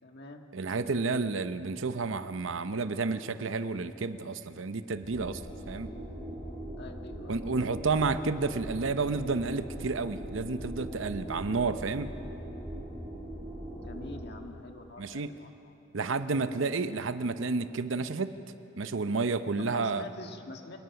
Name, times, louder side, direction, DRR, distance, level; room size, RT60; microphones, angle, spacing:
voice 1, 0.0-0.4 6.8-7.7 13.8-15.8 19.6-20.8, left 2 dB, 55° left, 4 dB, 1.7 m, -46 dB
voice 2, 0.5-5.4 5.7-5.9 7.3-12.1 15.0-15.3 15.9-18.3 18.8-20.0, right 4 dB, 70° right, 11 dB, 0.7 m, -31 dB
sound 1, 4.9-14.3, right 1 dB, 20° left, 5.9 m, -41 dB
27.0 x 19.0 x 5.8 m, 2.9 s
head